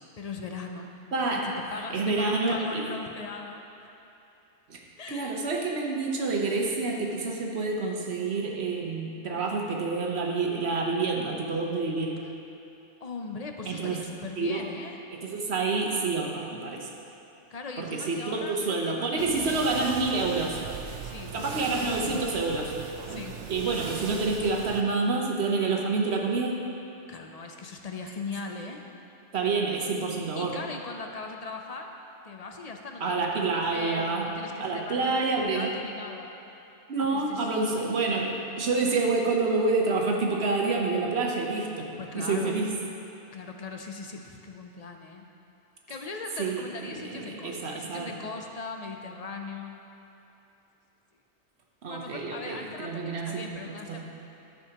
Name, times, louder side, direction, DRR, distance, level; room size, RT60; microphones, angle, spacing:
voice 1, 0.2-0.9 1.4-3.6 5.0-5.5 9.4-9.5 12.2-12.3 13.0-15.0 17.5-19.8 21.0-21.5 21.8-22.2 23.1-23.4 27.1-28.8 30.4-32.0 32.2-33.2 33.5-36.3 37.1-37.5 42.0-42.6 43.3-45.3 45.9-49.8 51.9-54.0, left 4 dB, 45° left, 3 dB, 0.5 m, -39 dB
voice 2, 1.1-1.5 1.9-2.8 4.7-4.8 5.1-12.2 13.7-14.0 14.4-14.6 15.1-16.9 17.8-20.6 21.3-22.7 23.5-26.7 29.3-30.6 33.0-35.7 36.9-42.7 46.4-48.1 51.8-54.0, right 3 dB, 65° right, 0 dB, 1.2 m, -28 dB
sound 1, 19.2-24.8, right 6 dB, 90° right, 1.0 m, -39 dB
13.0 x 6.7 x 2.9 m, 2.9 s
omnidirectional pair, 1.2 m